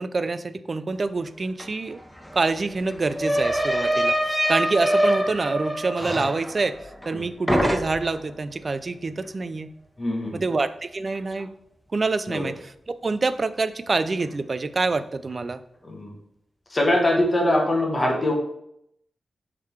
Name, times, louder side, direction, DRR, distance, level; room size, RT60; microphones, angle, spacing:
voice 1, 0.0-2.0 2.3-6.8 7.1-9.7 10.3-11.5 11.9-15.6, right 3 dB, 40° right, 13 dB, 0.4 m, -26 dB
sound 1, 1.6-1.7 1.9-7.2 7.5-8.2, equal, 5° left, 0.8 m, -25 dB
voice 2, 10.0-10.4 12.3-12.5 15.8-16.1 16.7-18.3, left 1 dB, 30° left, 0 dB, 1.6 m, -22 dB
6.4 x 3.7 x 4.6 m, 0.74 s
wide cardioid pair, 95°, 0 cm